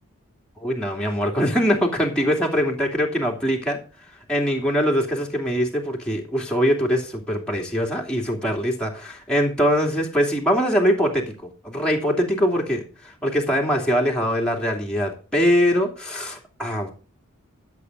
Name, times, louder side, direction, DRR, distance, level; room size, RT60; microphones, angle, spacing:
voice 1, 0.6-3.8 4.3-11.3 11.6-12.8 13.2-16.9, equal, 5° left, -2 dB, 2.8 m, -22 dB
12.5 x 7.3 x 6.4 m, 0.37 s
head